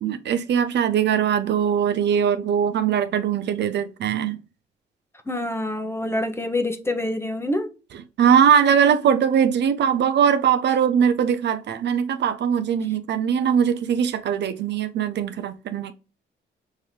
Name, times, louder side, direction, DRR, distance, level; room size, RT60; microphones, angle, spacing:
voice 1, 0.0-4.4 8.2-15.9, right 8 dB, 60° right, 0.6 m, -21 dB
voice 2, 5.3-7.7, left 1 dB, 10° left, 0.9 m, -26 dB
5.8 x 2.8 x 3.2 m
cardioid pair, 90°, 20 cm